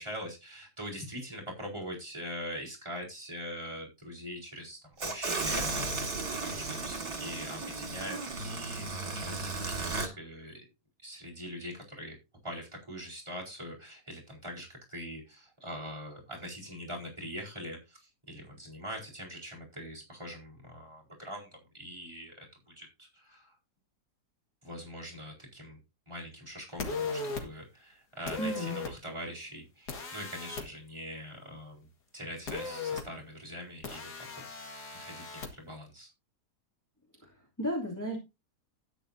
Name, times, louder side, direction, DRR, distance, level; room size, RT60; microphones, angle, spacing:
voice 1, 0.0-10.6 11.0-12.2 12.4-23.6 24.6-25.8 26.1-34.6 34.9-36.1, equal, 15° right, -3 dB, 4.6 m, -43 dB
sound 1, 5.0-10.1, right 3 dB, 60° right, 2.7 m, -35 dB
sound 2, 26.8-27.4 28.3-28.9 29.9-30.6 32.5-33.0 33.8-35.5, left 4 dB, 80° left, 2.5 m, -37 dB
voice 2, 28.4-28.8 37.6-38.2, equal, 10° left, -3 dB, 2.9 m, -33 dB
13.0 x 9.8 x 2.8 m, 0.25 s
omnidirectional pair, 1.7 m